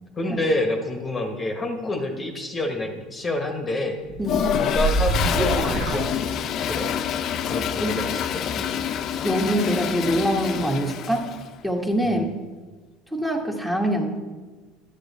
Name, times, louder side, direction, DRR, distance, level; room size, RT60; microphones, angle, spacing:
voice 1, 0.2-4.0 4.6-6.3 6.7-6.9 7.4-8.9 12.0-12.3, left 2 dB, 20° left, 4 dB, 1.1 m, -28 dB
sound 1, 4.1-6.8, right 2 dB, 55° right, 1.4 m, -26 dB
Toilet flush, 4.2-11.5, left 9 dB, 50° left, 0.5 m, -27 dB
voice 2, 4.2-4.5 7.7-8.0 9.2-11.3 11.6-12.2 13.1-14.2, equal, 5° right, 1 dB, 1.3 m, -24 dB
10.0 x 8.1 x 4.1 m, 1.4 s
supercardioid pair, 115°, 0 cm